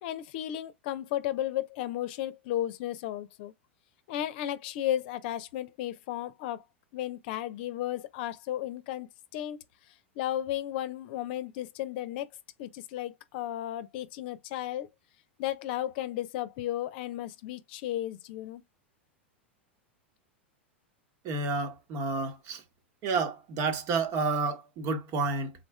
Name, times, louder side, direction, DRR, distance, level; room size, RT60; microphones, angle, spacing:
voice 1, 0.0-3.5 4.1-6.6 6.9-9.1 9.3-9.6 10.2-12.3 12.6-14.9 15.4-18.6, left 12 dB, 55° left, 0.7 m, -34 dB
voice 2, 21.2-22.6 23.0-25.5, right 4 dB, 45° right, 1.2 m, -30 dB
4.2 x 3.9 x 2.2 m
hypercardioid pair, 95°, 6 cm